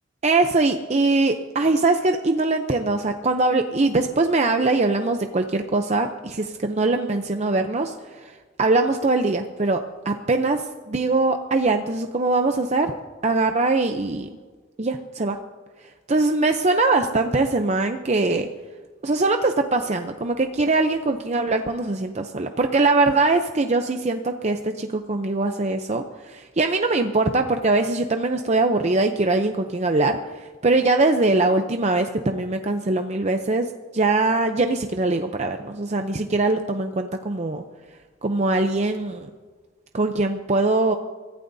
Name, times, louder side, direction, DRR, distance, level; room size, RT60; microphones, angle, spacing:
voice 1, 0.2-13.0 13.2-14.3 14.8-15.4 16.1-18.5 19.0-37.6 38.2-39.3 39.9-40.9, right 3 dB, 35° right, 6 dB, 0.6 m, -22 dB
24.5 x 14.5 x 2.7 m, 1.4 s
head